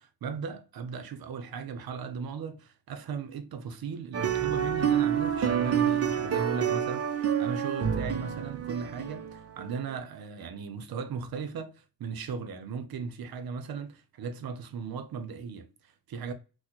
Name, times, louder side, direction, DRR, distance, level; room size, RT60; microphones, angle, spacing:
voice 1, 0.0-16.3, right 6 dB, 90° right, 0.6 m, -37 dB
sound 1, 4.1-9.8, right 8 dB, 45° right, 0.6 m, -28 dB
4.0 x 2.1 x 2.9 m
cardioid pair, 70°, 35 cm